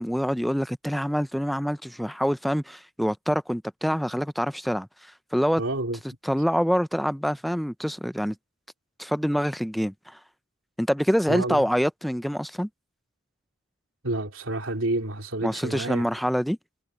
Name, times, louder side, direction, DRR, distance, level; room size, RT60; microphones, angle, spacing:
voice 1, 0.0-5.6 6.2-8.4 9.0-10.2 10.8-12.7 15.4-16.6, equal, ahead, 0.5 m, -26 dB
voice 2, 5.6-6.0 11.3-11.6 14.0-16.0, right 2 dB, 85° right, 3.1 m, -29 dB
head